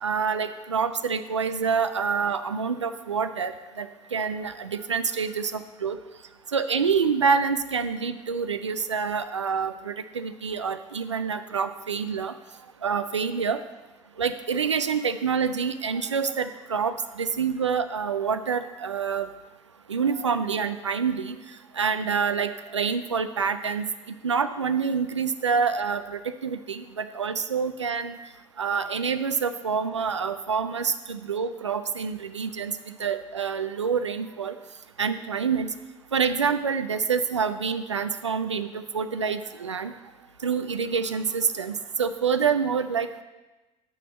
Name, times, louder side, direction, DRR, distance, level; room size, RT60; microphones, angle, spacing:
voice 1, 0.0-3.9 4.1-6.0 6.5-12.3 12.8-13.6 14.2-19.3 19.9-21.4 21.8-23.9 24.2-28.2 28.6-32.7 33.0-34.6 35.0-35.7 36.1-39.9 40.4-43.1, right 6 dB, 90° right, 11 dB, 0.4 m, -27 dB
14.0 x 5.8 x 4.2 m, 1.1 s
figure-of-eight pair, 55°, 15 cm